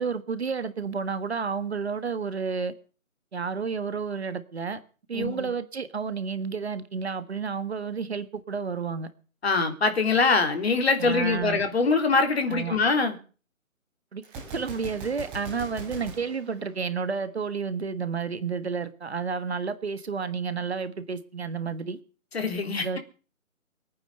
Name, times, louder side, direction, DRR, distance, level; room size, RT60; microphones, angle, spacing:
voice 1, 0.0-2.7 3.3-4.8 5.1-9.1 11.0-11.6 12.5-12.8 14.1-14.2 14.5-22.0 22.8-23.0, right 5 dB, 50° right, 1.6 m, -31 dB
voice 2, 5.1-5.5 9.4-13.2 22.3-23.0, left 4 dB, 50° left, 3.6 m, -23 dB
Gunshot gunfire, 14.2-17.3, right 3 dB, 10° right, 3.1 m, -41 dB
22.5 x 9.5 x 6.7 m
figure-of-eight pair, 160°, 41 cm